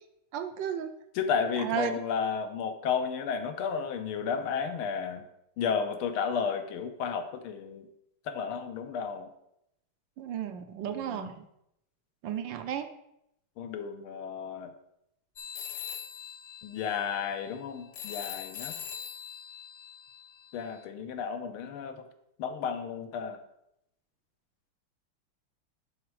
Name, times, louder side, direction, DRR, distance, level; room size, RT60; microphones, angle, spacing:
voice 1, 0.3-0.9 1.6-1.9 10.2-11.4 12.2-12.9, right 8 dB, 70° right, 9 dB, 1.2 m, -33 dB
voice 2, 1.2-5.2 5.6-7.9 8.3-9.3 10.8-11.3 13.6-14.7 16.6-18.8 20.5-22.0 22.4-23.4, left 6 dB, 80° left, 8 dB, 1.6 m, -32 dB
sound 1, 15.4-20.8, left 9 dB, 65° left, 1.3 m, -42 dB
11.0 x 4.0 x 4.7 m, 0.80 s
omnidirectional pair, 2.4 m